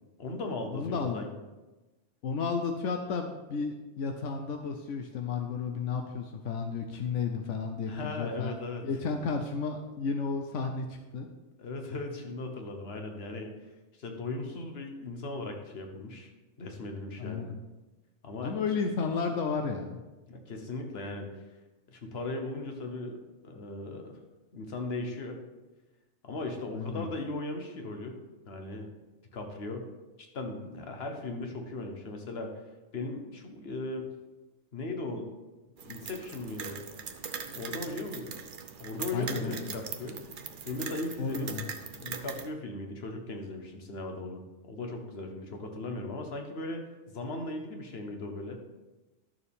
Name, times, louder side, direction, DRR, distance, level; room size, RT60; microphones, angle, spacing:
voice 1, 0.2-1.3 7.9-8.8 11.6-13.5 14.0-16.3 16.6-17.6 18.2-18.6 20.3-21.4 21.9-23.2 23.4-24.2 24.5-25.4 26.2-28.2 28.5-28.9 29.3-29.9 30.3-32.6 32.9-34.0 34.7-35.3 35.8-36.8 37.5-38.4 38.8-40.2 40.6-41.5 42.0-44.4 44.7-48.6, left 2 dB, 60° left, 4 dB, 1.4 m, -37 dB
voice 2, 0.7-1.2 2.2-8.5 8.8-11.3 17.2-17.6 18.4-20.0 26.7-27.1 37.5-37.8 39.1-39.8 41.2-41.7, left 5 dB, 85° left, 4 dB, 1.1 m, -33 dB
sound 1, 35.8-42.5, right 6 dB, 50° right, 0.8 m, -41 dB
12.0 x 6.8 x 3.6 m, 1.1 s
omnidirectional pair, 1.2 m